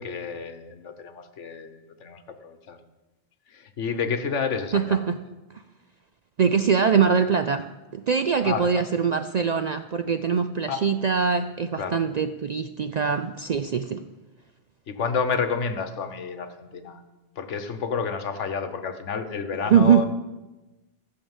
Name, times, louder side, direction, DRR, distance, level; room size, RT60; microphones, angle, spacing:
voice 1, 0.0-2.8 3.5-5.0 8.4-8.7 10.7-10.9 11.8-12.0 14.9-17.0 17.4-20.1, left 5 dB, 90° left, 8 dB, 1.3 m, -30 dB
voice 2, 4.7-5.2 6.4-14.0 19.7-20.1, right 6 dB, 60° right, 9 dB, 0.4 m, -22 dB
14.0 x 6.7 x 7.3 m, 1.1 s
omnidirectional pair, 1.2 m